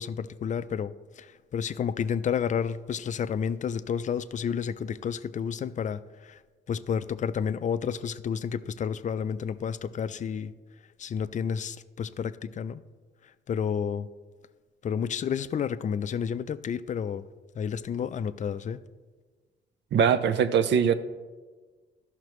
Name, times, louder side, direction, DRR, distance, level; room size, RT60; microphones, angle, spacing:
voice 1, 0.0-6.4 6.7-10.5 11.0-12.8 13.5-14.1 14.8-17.2 17.6-18.8, left 7 dB, 40° left, 14 dB, 0.4 m, -31 dB
voice 2, 19.9-20.9, right 7 dB, 65° right, 12 dB, 0.6 m, -22 dB
13.0 x 5.8 x 3.1 m, 1.4 s
cardioid pair, 90°, 20 cm